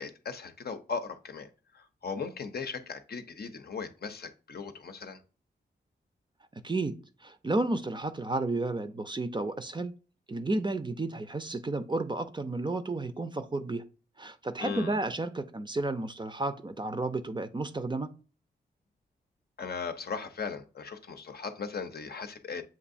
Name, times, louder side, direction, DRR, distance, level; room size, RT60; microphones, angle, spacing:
voice 1, 0.0-5.2 14.6-15.0 19.6-22.6, left 5 dB, 55° left, 0.7 m, -38 dB
voice 2, 6.6-6.9 7.2-9.9 10.3-13.8 14.2-18.1, right 2 dB, 25° right, 0.6 m, -32 dB
7.2 x 2.6 x 2.6 m
cardioid pair, 45°, 19 cm